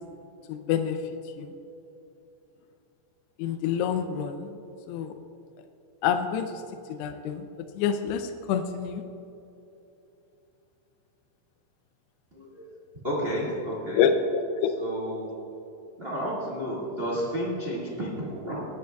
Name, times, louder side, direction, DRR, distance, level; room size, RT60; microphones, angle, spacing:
voice 1, 0.5-1.0 1.4-1.5 3.4-4.5 4.9-5.1 6.0-6.6 6.9-7.5 7.8-9.0 13.9-14.7, left 7 dB, 90° left, 7 dB, 2.7 m, -27 dB
voice 2, 12.3-12.7 13.0-14.0 14.8-15.3 16.0-18.7, equal, 40° right, -5 dB, 0.8 m, -31 dB
19.0 x 11.0 x 2.3 m, 2.9 s
omnidirectional pair, 4.7 m